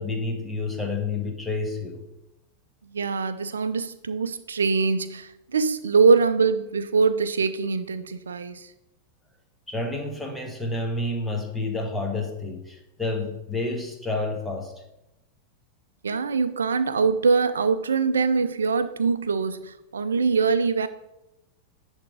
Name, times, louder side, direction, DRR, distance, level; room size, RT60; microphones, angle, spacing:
voice 1, 0.0-2.0 9.7-14.7, left 2 dB, 5° left, 1.4 m, -29 dB
voice 2, 2.9-8.7 16.0-20.9, right 5 dB, 70° right, 0.5 m, -23 dB
10.5 x 3.6 x 5.1 m
figure-of-eight pair, 90°, 0 cm